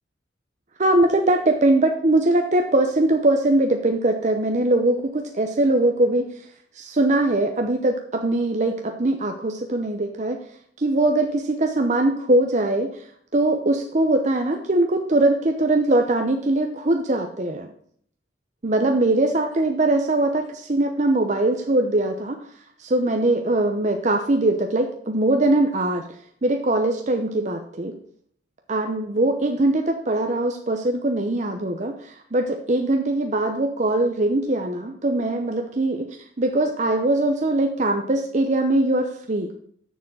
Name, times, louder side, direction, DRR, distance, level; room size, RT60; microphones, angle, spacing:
voice 1, 0.8-6.3 6.8-10.4 10.8-12.9 13.3-17.7 18.6-22.4 22.8-26.0 26.4-28.0 28.7-36.1 36.4-39.6, right 2 dB, 40° right, 4 dB, 0.8 m, -21 dB
7.1 x 6.4 x 7.2 m, 0.64 s
head